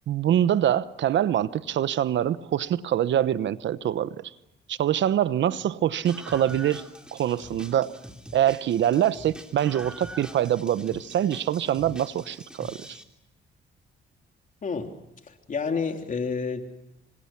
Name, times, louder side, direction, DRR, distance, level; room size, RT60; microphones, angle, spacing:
voice 1, 0.1-4.3 4.7-6.8 7.1-8.0 8.3-13.0, right 11 dB, 70° right, 1.0 m, -24 dB
Screaming, 6.1-13.0, equal, 5° right, 3.4 m, -44 dB
voice 2, 14.6-14.9 15.3-16.6, left 5 dB, 40° left, 3.4 m, -29 dB
29.0 x 25.5 x 6.0 m
cardioid pair, 90°, 20 cm